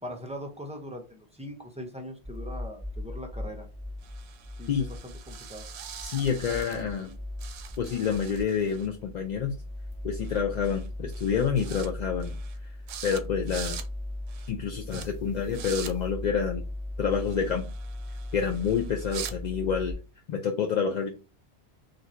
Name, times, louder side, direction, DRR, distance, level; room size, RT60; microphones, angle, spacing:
voice 1, 0.0-3.7 4.6-5.7 14.9-15.0, equal, 10° right, 2 dB, 0.4 m, -41 dB
sound 1, 2.2-19.9, left 1 dB, 10° left, 1.1 m, -38 dB
sound 2, 4.0-7.1 7.4-8.9 10.2-10.4 10.6-10.9 11.1-11.9 12.2-12.6 12.9-13.2 13.5-13.9 14.3-14.5 14.9-15.1 15.5-15.9 17.1-19.4, right 9 dB, 75° right, 0.8 m, -43 dB
voice 2, 6.0-7.1 7.8-9.5 10.0-12.4 13.0-13.8 14.5-16.6 17.0-17.7 18.3-20.0 20.3-21.1, left 7 dB, 60° left, 2 dB, 0.5 m, -28 dB
2.6 x 2.5 x 4.2 m, 0.32 s
omnidirectional pair, 1.1 m